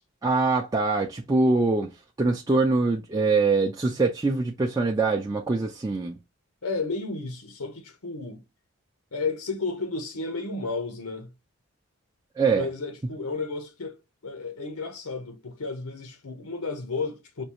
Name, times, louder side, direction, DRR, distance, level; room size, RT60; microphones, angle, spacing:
voice 1, 0.2-1.9 2.2-6.2 12.4-12.7, right 3 dB, 15° right, 0.3 m, -23 dB
voice 2, 6.6-8.4 9.1-11.3 12.5-14.0 14.2-17.5, left 3 dB, 85° left, 0.8 m, -32 dB
5.2 x 2.3 x 2.9 m
head